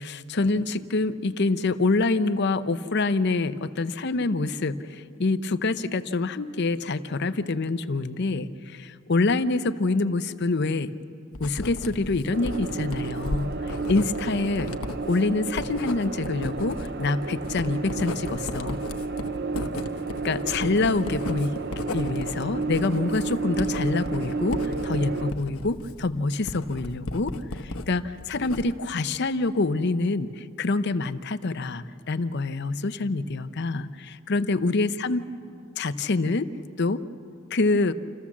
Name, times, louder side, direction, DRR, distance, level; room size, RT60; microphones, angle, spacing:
voice 1, 0.0-10.9 11.4-14.7 15.0-18.8 20.2-21.6 21.9-35.2 35.8-36.5 36.8-37.0 37.5-37.9, left 3 dB, 50° left, 11 dB, 0.6 m, -26 dB
Writing, 11.3-27.9 28.2-28.9, left 2 dB, 80° left, 1.1 m, -35 dB
sound 1, 12.3-25.3, right 4 dB, 50° right, 0.6 m, -32 dB
28.0 x 14.5 x 7.3 m, 2.5 s
head